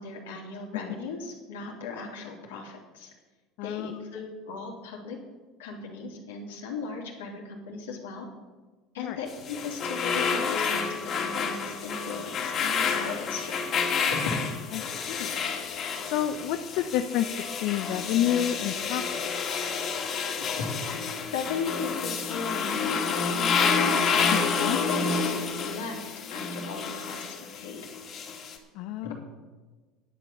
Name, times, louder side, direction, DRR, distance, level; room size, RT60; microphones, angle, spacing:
voice 1, 0.0-3.1 3.6-5.2 5.6-8.3 8.9-13.6 14.0-14.4 20.6-20.7 21.3-27.8 29.0-29.2, left 4 dB, 85° left, -1 dB, 3.1 m, -37 dB
voice 2, 3.6-3.9 9.0-9.2 15.1-15.5 16.0-17.3 17.6-19.3 24.3-24.4 24.7-24.8 28.8-29.2, left 11 dB, 65° left, 7 dB, 0.7 m, -29 dB
sound 1, 9.3-28.6, left 5 dB, 45° left, 2.5 m, -29 dB
11.0 x 9.2 x 6.9 m, 1.3 s
hypercardioid pair, 85°, 0 cm